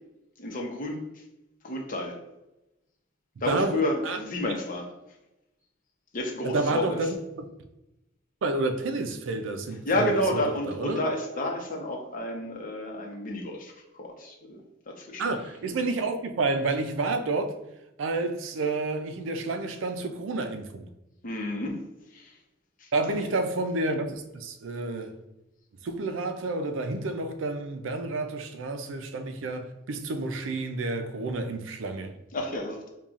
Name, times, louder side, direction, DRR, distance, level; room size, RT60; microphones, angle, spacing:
voice 1, 0.4-1.0 1.6-2.2 3.4-4.9 6.1-7.0 9.9-13.7 14.0-15.3 21.2-21.8 22.1-22.3 32.3-32.9, left 1 dB, 45° left, 0.7 m, -30 dB
voice 2, 3.5-4.2 6.4-7.4 8.4-10.4 10.7-11.0 15.2-17.6 18.0-20.9 22.9-25.2 25.8-32.1, right 2 dB, 80° right, 0.4 m, -30 dB
5.4 x 2.3 x 2.4 m
head